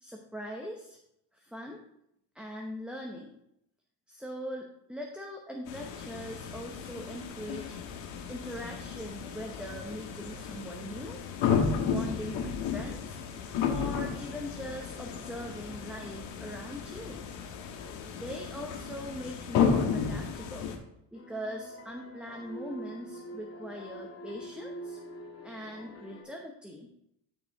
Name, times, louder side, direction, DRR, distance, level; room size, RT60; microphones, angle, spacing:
voice 1, 0.0-1.0 1.3-1.8 2.3-3.4 4.1-7.8 8.3-11.2 11.8-13.2 13.7-17.2 18.1-20.7 21.1-25.0 25.4-26.9, equal, ahead, 0 dB, 0.9 m, -41 dB
sound 1, 5.7-20.8, left 6 dB, 85° left, 1.7 m, -33 dB
sound 2, 21.1-26.2, right 1 dB, 35° left, 2.2 m, -45 dB
14.0 x 4.9 x 3.6 m, 0.77 s
cardioid pair, 130°, 44 cm